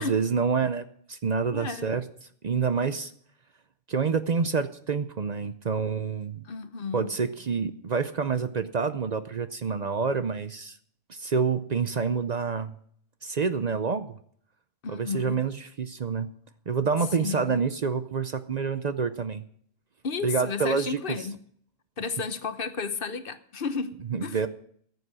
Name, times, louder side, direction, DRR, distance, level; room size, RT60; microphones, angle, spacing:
voice 1, 0.0-2.0 2.4-3.1 3.9-6.4 6.9-10.8 11.1-12.7 13.2-14.1 14.9-16.3 16.7-19.4 20.2-21.2 24.1-24.5, right 5 dB, 50° right, 11 dB, 0.7 m, -27 dB
voice 2, 1.5-1.9 6.5-7.1 14.8-15.4 17.2-17.5 20.0-21.4 22.0-24.0 24.2-24.4, left 5 dB, 60° left, 11 dB, 1.1 m, -32 dB
14.5 x 7.9 x 6.2 m, 0.62 s
omnidirectional pair, 1.1 m